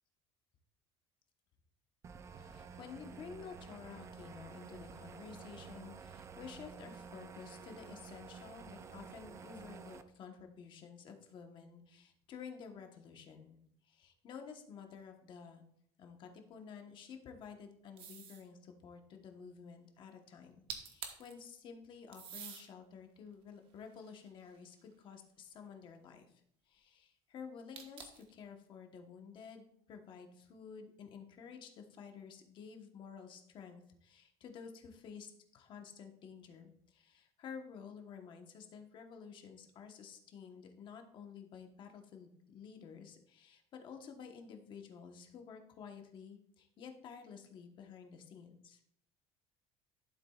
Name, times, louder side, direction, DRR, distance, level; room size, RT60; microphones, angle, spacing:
sound 1, 2.0-10.0, right 6 dB, 25° right, 0.5 m, -51 dB
voice 1, 2.4-13.6 13.8-15.6 16.0-26.3 26.7-48.8, left 6 dB, 40° left, 4 dB, 1.1 m, -52 dB
sound 2, 18.0-18.5 20.4-20.5 20.7-21.3 22.1-22.7 23.3-24.8 27.7-28.3, right 7 dB, 45° right, 1.3 m, -48 dB
12.0 x 7.3 x 2.4 m, 0.71 s
cardioid pair, 170°, 12 cm